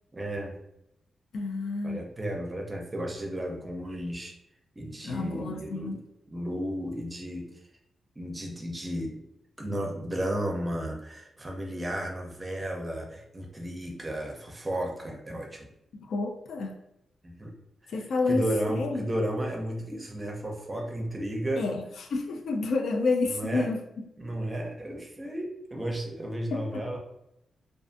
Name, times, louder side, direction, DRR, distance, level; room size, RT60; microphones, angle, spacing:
voice 1, 0.1-0.6 1.8-4.3 4.8-6.0 6.3-7.5 8.2-9.1 9.6-15.7 17.2-17.5 17.8-17.9 18.3-21.7 23.3-23.7 24.2-27.0, right 1 dB, 20° right, 1 dB, 0.5 m, -33 dB
voice 2, 1.3-2.0 5.0-6.0 16.0-16.8 17.9-19.0 21.6-23.8 26.5-27.0, left 3 dB, 75° left, 4 dB, 0.4 m, -30 dB
2.4 x 2.4 x 2.5 m, 0.81 s
wide cardioid pair, 135°, 0 cm